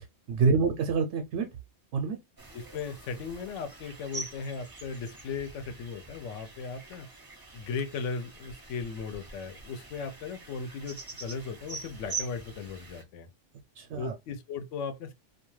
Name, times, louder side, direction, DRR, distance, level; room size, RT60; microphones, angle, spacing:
voice 1, 0.0-1.5 1.9-2.2 13.7-14.1, right 4 dB, 85° right, 0.9 m, -27 dB
sound 1, 2.4-13.0, right 4 dB, 30° right, 0.4 m, -44 dB
voice 2, 2.5-7.1 7.5-13.3 14.0-15.1, left 5 dB, 90° left, 0.9 m, -37 dB
2.4 x 2.2 x 3.0 m
omnidirectional pair, 1.2 m